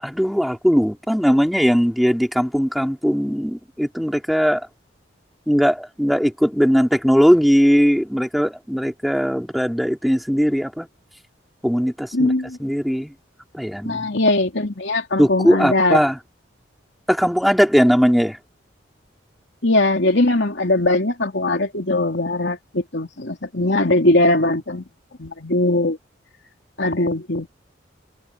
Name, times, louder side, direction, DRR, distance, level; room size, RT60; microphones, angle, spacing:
voice 1, 0.0-4.7 5.5-10.9 11.6-12.3 12.6-13.1 13.5-14.1 15.2-16.2 17.1-18.4, equal, ahead, 3.9 m, -19 dB
voice 2, 12.1-12.6 13.8-16.0 19.6-24.8 25.2-26.0 26.8-27.5, left 2 dB, 70° left, 3.2 m, -20 dB
head